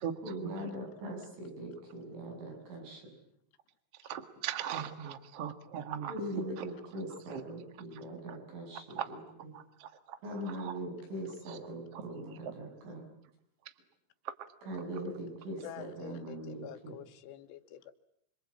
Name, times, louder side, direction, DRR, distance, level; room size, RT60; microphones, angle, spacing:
voice 1, 0.2-3.1 6.1-9.5 10.2-13.1 14.6-17.0, right 1 dB, 80° right, 9.9 m, -41 dB
voice 2, 4.0-6.1 7.3-7.4 9.0-9.1 9.8-10.2 10.6-10.7 12.0-12.1, right 9 dB, 55° right, 1.7 m, -38 dB
voice 3, 15.6-17.9, left 11 dB, 85° left, 3.9 m, -47 dB
26.5 x 26.0 x 8.6 m
omnidirectional pair, 5.5 m